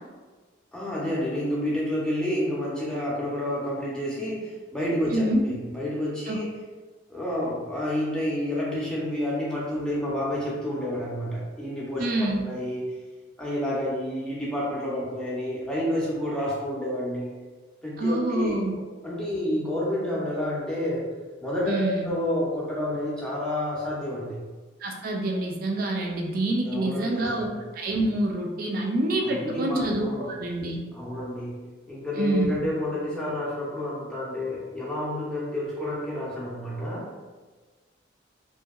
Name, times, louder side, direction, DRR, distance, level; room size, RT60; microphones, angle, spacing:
voice 1, 0.7-6.5 7.1-12.9 13.4-17.3 17.8-21.0 21.4-24.5 26.6-27.5 29.2-30.3 30.9-31.6 31.9-37.1, left 1 dB, 5° left, -6 dB, 0.6 m, -29 dB
voice 2, 5.1-5.4 6.3-6.4 12.0-12.4 18.0-18.7 21.7-22.1 24.8-27.5 27.7-30.8 32.2-32.7, right 1 dB, 50° right, 1 dB, 0.4 m, -26 dB
2.8 x 2.6 x 2.3 m, 1.3 s
head